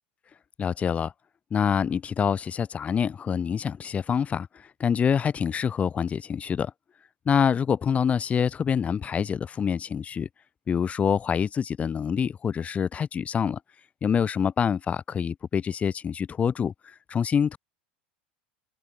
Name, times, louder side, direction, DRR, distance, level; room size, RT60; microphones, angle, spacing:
voice 1, 0.6-1.1 1.5-6.7 7.3-10.3 10.7-13.6 14.0-17.6, left 7 dB, 25° left, 0.4 m, -26 dB
open air
hypercardioid pair, 90°, 5 cm